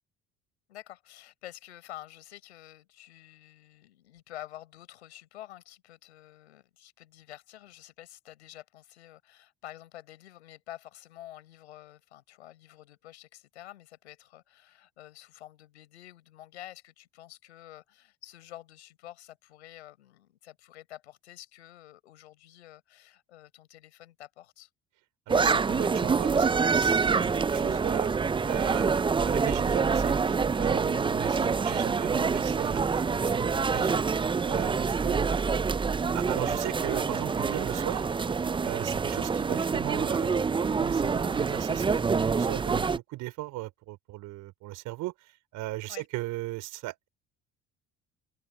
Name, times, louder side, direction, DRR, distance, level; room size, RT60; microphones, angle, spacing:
voice 1, 0.7-24.7 30.9-31.2 45.9-46.1, left 13 dB, 90° left, 4.6 m, -49 dB
sound 1, 25.3-43.0, right 5 dB, 15° right, 0.5 m, -26 dB
voice 2, 25.3-28.1 28.4-34.1 34.4-35.3 36.1-38.1 38.6-47.1, right 18 dB, 70° right, 4.9 m, -38 dB
hypercardioid pair, 65°, 32 cm